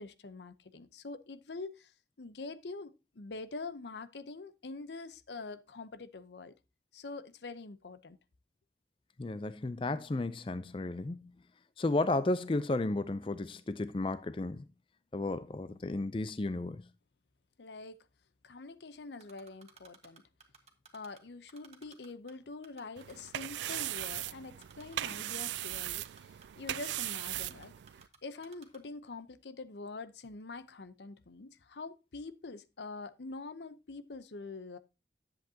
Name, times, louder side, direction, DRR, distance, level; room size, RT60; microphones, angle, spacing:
voice 1, 0.0-1.9 2.2-6.5 6.9-8.2 17.6-18.1 18.4-20.2 20.9-27.7 28.2-34.8, left 3 dB, 80° left, 0.7 m, -45 dB
voice 2, 9.2-11.3 11.8-14.6 15.1-16.9, left 2 dB, 30° left, 0.4 m, -33 dB
Typing, 19.2-21.2 21.5-22.3 22.6-24.2 24.6-25.0 25.2-28.2 28.4-28.8, right 5 dB, 35° right, 1.4 m, -56 dB
sound 1, 23.0-28.1, right 14 dB, 90° right, 0.3 m, -38 dB
10.5 x 7.9 x 2.8 m
head